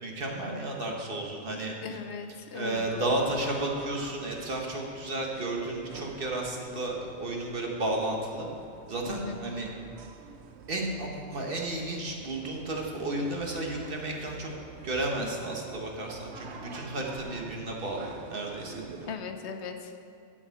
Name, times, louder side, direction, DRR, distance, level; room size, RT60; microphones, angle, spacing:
voice 1, 0.0-2.0 2.5-8.5 8.9-9.7 10.7-14.5 14.8-18.7, right 2 dB, 50° right, 0 dB, 1.5 m, -33 dB
voice 2, 1.8-3.2 9.1-9.4 19.1-19.9, left 6 dB, 75° left, 7 dB, 1.0 m, -38 dB
sound 1, 2.7-19.2, right 6 dB, 70° right, 0.9 m, -48 dB
8.9 x 6.3 x 8.3 m, 2.4 s
omnidirectional pair, 1.2 m